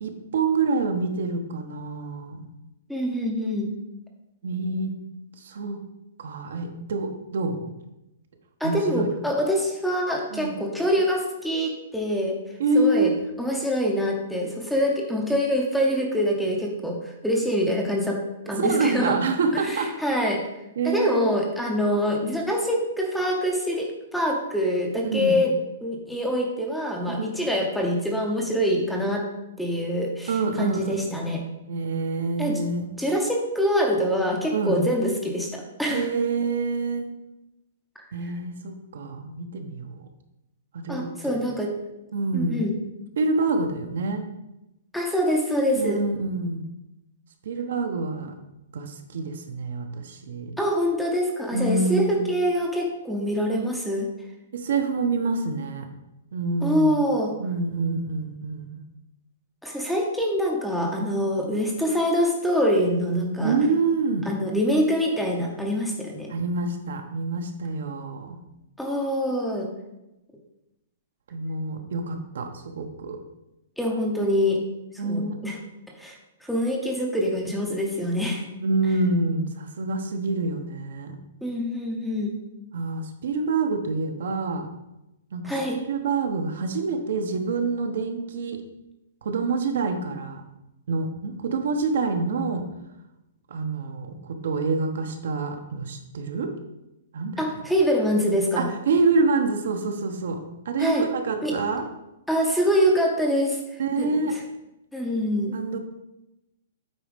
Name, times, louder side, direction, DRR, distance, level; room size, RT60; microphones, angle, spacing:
voice 1, 0.0-2.5 4.4-4.9 5.4-5.8 6.2-7.7 8.6-9.1 10.3-10.6 12.6-13.1 18.6-19.9 20.8-21.4 25.0-25.4 27.1-27.4 30.3-31.3 31.6-32.9 34.5-34.8 35.9-37.1 38.1-40.0 40.7-41.4 42.1-42.6 43.2-44.2 45.7-46.6 47.4-48.3 48.7-50.5 51.5-52.3 54.5-55.8 56.3-57.1 57.4-58.8 63.4-64.3 66.3-68.4 71.3-73.2 75.0-75.4 78.6-81.2 82.7-84.7 85.3-85.4 85.7-88.6 89.2-90.4 90.9-92.6 93.5-96.5 97.1-97.6 98.6-100.4 100.6-101.8 103.8-104.3 105.5-105.8, right 3 dB, 60° right, 5 dB, 1.1 m, -27 dB
voice 2, 2.9-3.7 8.6-12.4 12.7-13.1 13.4-18.2 18.5-19.2 19.5-20.4 20.8-25.5 25.8-29.2 29.6-31.4 32.4-32.6 33.0-36.1 38.2-38.3 40.9-41.7 42.3-42.7 44.9-46.0 50.6-54.1 56.6-57.3 59.6-63.6 64.3-66.3 68.8-69.7 73.8-74.6 74.9-75.6 76.0-78.4 81.4-82.4 85.4-85.8 97.4-98.7 100.8-101.1 101.4-101.5 102.3-104.4 104.9-105.6, equal, ahead, 0 dB, 0.8 m, -25 dB
8.5 x 4.3 x 5.2 m, 0.92 s
hypercardioid pair, 175°, 0 cm